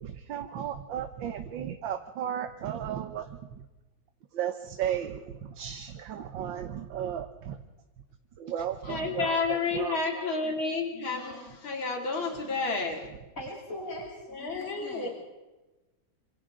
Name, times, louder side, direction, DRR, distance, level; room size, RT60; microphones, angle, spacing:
voice 1, 0.0-3.2 4.3-7.6 8.4-9.3 9.7-10.0, right 9 dB, 75° right, 7 dB, 1.7 m, -34 dB
voice 2, 8.6-13.1 14.3-15.1, left 4 dB, 90° left, 1 dB, 3.6 m, -31 dB
voice 3, 13.4-15.1, left 1 dB, 45° left, -6 dB, 7.8 m, -40 dB
27.5 x 25.5 x 3.8 m, 1.1 s
omnidirectional pair, 2.1 m